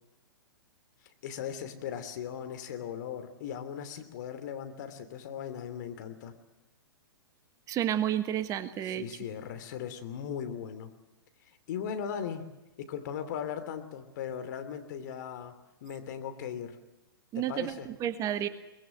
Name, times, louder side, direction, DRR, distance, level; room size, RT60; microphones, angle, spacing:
voice 1, 1.2-6.3 8.8-10.9 11.7-12.4 12.8-15.5 15.8-16.8 17.3-17.9, left 8 dB, 50° left, 9 dB, 3.1 m, -38 dB
voice 2, 7.7-9.1 17.3-18.5, right 11 dB, 25° right, 11 dB, 1.4 m, -31 dB
23.0 x 20.5 x 7.8 m, 1.0 s
figure-of-eight pair, 115°, 12 cm